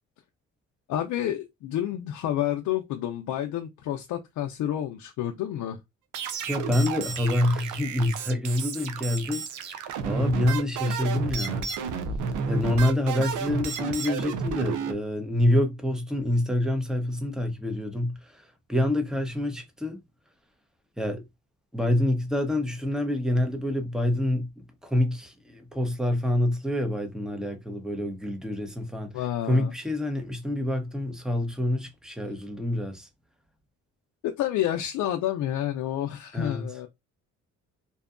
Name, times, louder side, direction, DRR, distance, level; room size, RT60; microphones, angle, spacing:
voice 1, 0.9-5.8 29.1-29.7 34.2-36.9, left 11 dB, 75° left, 0.5 m, -29 dB
sound 1, 6.1-14.9, right 6 dB, 85° right, 0.5 m, -32 dB
voice 2, 6.5-11.7 12.5-20.0 21.0-21.2 21.7-33.1 36.3-36.7, left 1 dB, ahead, 0.7 m, -27 dB
2.7 x 2.2 x 2.4 m
cardioid pair, 90°, 30 cm